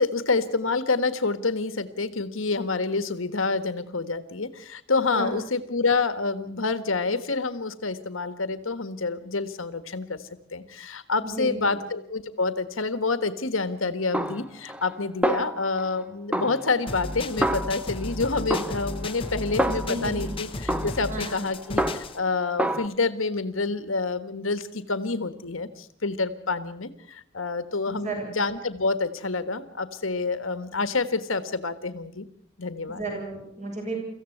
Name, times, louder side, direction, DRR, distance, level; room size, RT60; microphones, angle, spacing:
voice 1, 0.0-10.2 10.5-32.3 32.6-33.0, left 3 dB, 85° left, 12 dB, 1.5 m, -28 dB
voice 2, 11.2-11.8 19.6-20.3 21.1-21.4 27.9-28.3 32.9-34.0, right 1 dB, 35° right, 1 dB, 7.4 m, -33 dB
Snare drum, 14.1-15.0 15.2-16.0 16.3-18.1 18.5-20.2 20.7-22.3 22.6-22.9, right 1 dB, 5° right, 0.8 m, -29 dB
sound 1, 16.9-22.2, left 2 dB, 25° left, 1.1 m, -34 dB
24.5 x 15.5 x 7.9 m, 0.67 s
head